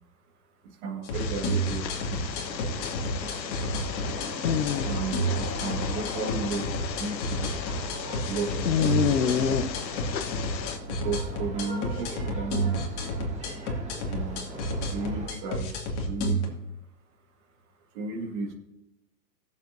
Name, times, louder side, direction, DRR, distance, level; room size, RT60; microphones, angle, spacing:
voice 1, 0.6-2.4 4.8-7.6 8.3-9.7 10.9-12.8 14.1-14.4 14.9-15.7 16.0-16.5 17.9-18.5, right 4 dB, 45° right, 1 dB, 2.0 m, -34 dB
sound 1, 1.0-16.5, equal, 45° left, 2.2 m, -31 dB
sound 2, 1.1-10.8, left 8 dB, 85° left, 1.0 m, -31 dB
sound 3, 1.9-15.3, right 2 dB, 15° right, 1.5 m, -42 dB
19.0 x 7.2 x 2.7 m, 0.91 s
hypercardioid pair, 130°, 50 cm